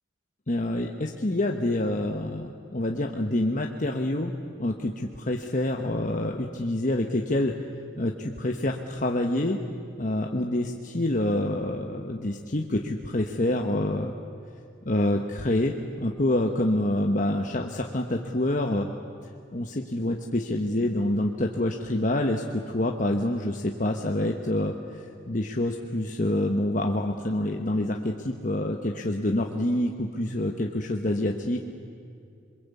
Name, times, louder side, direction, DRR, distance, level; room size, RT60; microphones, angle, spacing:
voice 1, 0.5-4.3 4.6-7.5 8.0-9.6 10.0-14.1 14.8-15.7 16.0-18.9 19.5-31.6, left 1 dB, 45° left, 2 dB, 1.2 m, -27 dB
26.5 x 22.5 x 8.4 m, 2.5 s
head